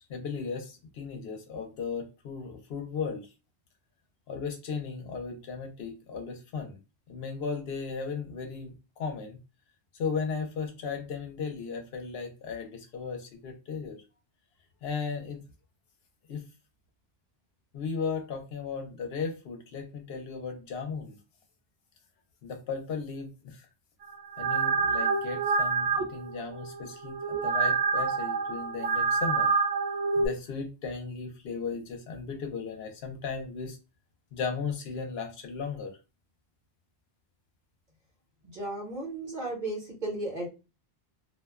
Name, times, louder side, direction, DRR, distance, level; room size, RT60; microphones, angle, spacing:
voice 1, 0.1-3.3 4.3-6.8 7.1-9.4 9.9-14.0 14.8-15.4 16.3-16.5 17.7-21.2 22.4-23.7 24.4-29.5 30.2-33.8 34.3-36.0, left 5 dB, 80° left, 0.9 m, -36 dB
sound 1, 24.1-30.3, right 5 dB, 85° right, 0.9 m, -27 dB
voice 2, 38.4-40.5, right 2 dB, 50° right, 1.0 m, -34 dB
2.4 x 2.1 x 2.3 m
omnidirectional pair, 1.0 m